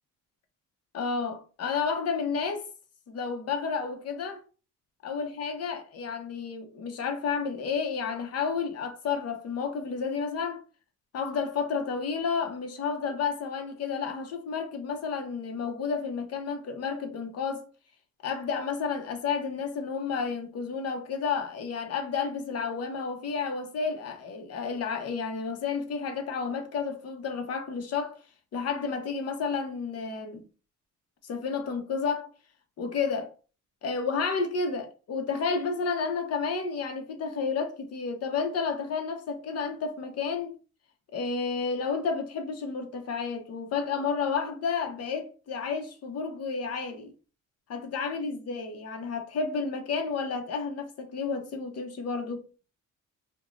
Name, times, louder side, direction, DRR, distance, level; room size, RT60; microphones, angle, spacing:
voice 1, 0.9-2.7 3.1-4.4 5.0-10.6 11.1-17.7 18.2-28.2 28.5-30.4 31.2-32.3 32.8-33.3 33.8-40.5 41.1-47.1 47.7-52.5, left 5 dB, 55° left, 0.7 m, -31 dB
4.8 x 2.2 x 2.4 m
cardioid pair, 170°, 31 cm